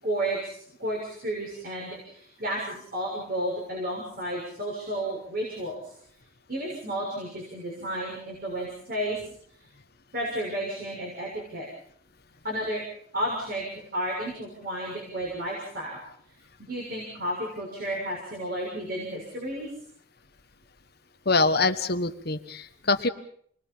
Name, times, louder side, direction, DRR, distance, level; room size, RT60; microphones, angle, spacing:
voice 1, 0.0-5.9 6.5-9.3 10.1-11.7 12.4-12.8 13.1-16.0 16.3-19.7, right 1 dB, 50° right, -2 dB, 6.6 m, -32 dB
voice 2, 21.2-23.1, left 3 dB, 50° left, 9 dB, 1.4 m, -24 dB
28.5 x 21.0 x 5.7 m, 0.63 s
head